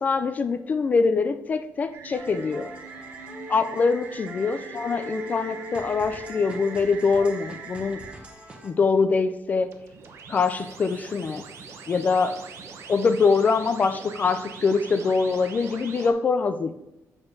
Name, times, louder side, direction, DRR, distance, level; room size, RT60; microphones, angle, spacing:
voice 1, 0.0-2.7 3.5-8.0 8.6-9.8 10.3-11.4 11.9-12.4 12.9-16.7, left 4 dB, 30° left, 10 dB, 0.3 m, -24 dB
sound 1, 1.9-8.1 9.7-16.1, right 5 dB, 60° right, 0.8 m, -42 dB
sound 2, 2.1-8.7, left 1 dB, 20° right, 0.9 m, -41 dB
6.9 x 6.8 x 2.7 m, 0.93 s
wide cardioid pair, 180°, 5 cm